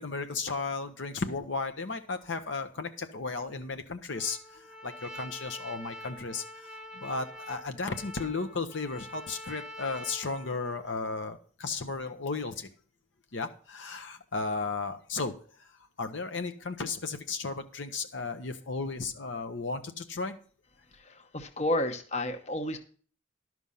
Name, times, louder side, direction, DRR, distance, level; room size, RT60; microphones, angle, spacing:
voice 1, 0.0-6.7 6.9-12.7 13.3-15.3 15.6-15.7 16.0-20.4, left 4 dB, 70° left, 8 dB, 0.8 m, -34 dB
Trumpet, 4.1-10.9, left 1 dB, 5° right, 1.1 m, -46 dB
voice 2, 20.9-22.8, left 1 dB, 35° left, 7 dB, 1.0 m, -31 dB
11.5 x 6.2 x 5.4 m, 0.43 s
head